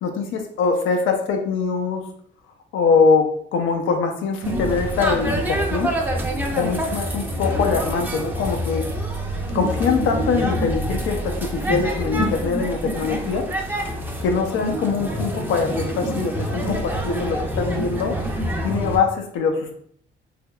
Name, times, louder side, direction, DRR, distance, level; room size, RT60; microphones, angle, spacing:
voice 1, 0.0-2.0 2.7-5.9 6.5-8.8 9.5-13.5 14.2-18.2 18.6-19.8, left 5 dB, 80° left, 4 dB, 0.5 m, -23 dB
sound 1, 4.4-19.0, right 1 dB, 10° right, 0.5 m, -26 dB
3.3 x 3.0 x 2.3 m, 0.62 s
cardioid pair, 90°, 20 cm